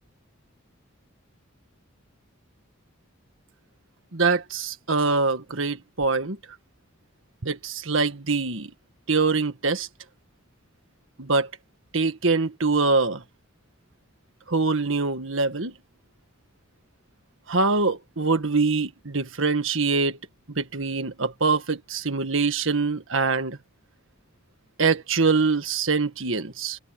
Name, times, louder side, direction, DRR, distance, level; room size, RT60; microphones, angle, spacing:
voice 1, 4.1-6.4 7.4-8.7 9.1-9.9 11.2-11.5 11.9-13.2 14.5-15.7 17.5-20.2 20.6-23.6 24.8-26.8, right 4 dB, 65° right, 1.8 m, -24 dB
head